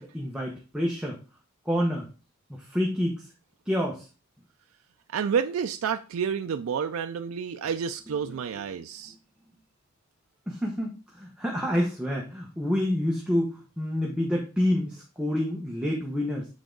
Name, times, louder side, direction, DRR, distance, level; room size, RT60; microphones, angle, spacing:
voice 1, 0.1-1.2 1.6-2.1 2.5-3.2 3.6-4.1 8.3-8.4 9.0-9.1 10.5-16.5, equal, 5° right, 0.9 m, -28 dB
voice 2, 5.1-9.1, right 7 dB, 75° right, 0.4 m, -29 dB
7.1 x 3.7 x 3.8 m
head